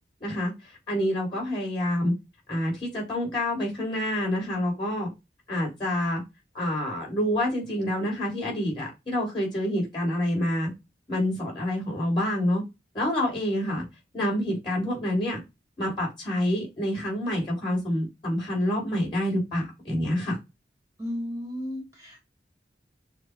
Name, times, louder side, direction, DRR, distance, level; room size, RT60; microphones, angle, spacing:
voice 1, 0.2-0.5 0.9-2.1 2.5-5.1 5.5-6.2 6.5-10.7 11.1-12.6 12.9-13.8 14.1-15.4 15.8-20.3, left 1 dB, 30° left, -1 dB, 3.3 m, -27 dB
voice 2, 21.0-22.2, left 1 dB, 20° right, -1 dB, 1.2 m, -34 dB
6.5 x 2.2 x 3.7 m, 0.24 s
head